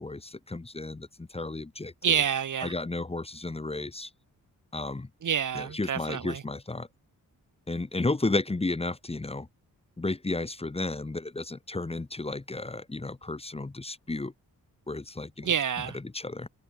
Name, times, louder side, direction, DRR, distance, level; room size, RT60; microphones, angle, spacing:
voice 1, 0.0-2.2 2.6-4.1 4.7-5.1 5.5-6.9 7.7-9.5 10.0-14.3 14.9-15.5 16.0-16.5, left 2 dB, 15° left, 1.5 m, -33 dB
voice 2, 2.0-2.7 5.2-6.4 15.4-16.0, right 8 dB, 60° right, 1.8 m, -28 dB
wide cardioid pair, 115°, 34 cm